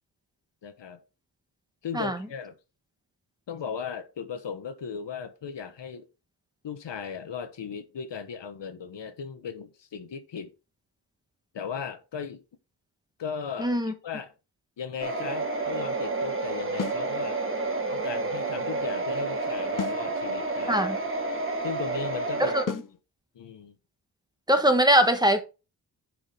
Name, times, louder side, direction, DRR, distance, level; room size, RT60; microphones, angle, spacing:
voice 1, 0.6-1.0 1.8-2.5 3.5-6.0 6.6-10.5 11.5-12.4 13.2-14.3 14.8-17.4 17.9-20.9 21.6-22.6 23.3-23.7, left 6 dB, 90° left, 1.2 m, -37 dB
voice 2, 13.6-13.9 20.7-21.0 22.4-22.6 24.5-25.4, right 1 dB, 10° right, 1.2 m, -21 dB
sound 1, 15.0-22.6, right 3 dB, 30° right, 1.4 m, -30 dB
sound 2, 16.8-17.1 19.8-20.1 22.7-23.0, left 7 dB, 50° left, 0.7 m, -33 dB
9.4 x 4.8 x 3.5 m
wide cardioid pair, 125°, 42 cm